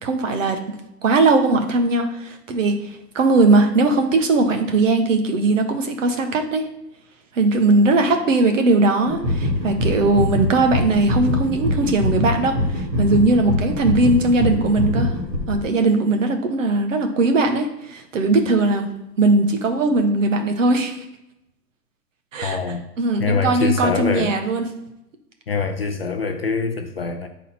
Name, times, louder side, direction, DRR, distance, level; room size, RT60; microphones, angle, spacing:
voice 1, 0.0-0.6 1.0-6.6 7.3-15.1 15.5-18.9 19.2-21.0 22.3-22.6 23.0-24.7, right 2 dB, 50° right, 6 dB, 1.2 m, -19 dB
sound 1, 9.0-15.6, left 1 dB, 10° right, 0.6 m, -23 dB
voice 2, 22.4-22.8 23.2-24.3 25.5-27.3, left 4 dB, 40° left, 5 dB, 0.5 m, -24 dB
8.1 x 4.1 x 4.3 m, 0.90 s
hypercardioid pair, 155°, 50 cm